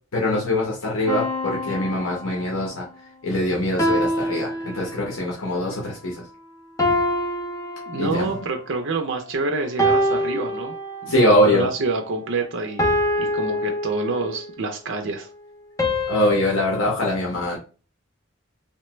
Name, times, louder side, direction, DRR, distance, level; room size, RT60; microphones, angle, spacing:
voice 1, 0.1-2.9 3.2-6.2 8.0-8.4 11.1-11.7 16.1-17.6, left 1 dB, 75° left, 0.8 m, -22 dB
sound 1, 1.1-2.7 3.8-5.3 6.8-8.5 9.8-11.3 12.8-14.5 15.8-16.8, equal, 15° left, 0.4 m, -25 dB
voice 2, 7.9-10.7 11.0-12.9 13.2-15.3, right 3 dB, 65° right, 0.5 m, -27 dB
3.2 x 2.1 x 3.0 m
head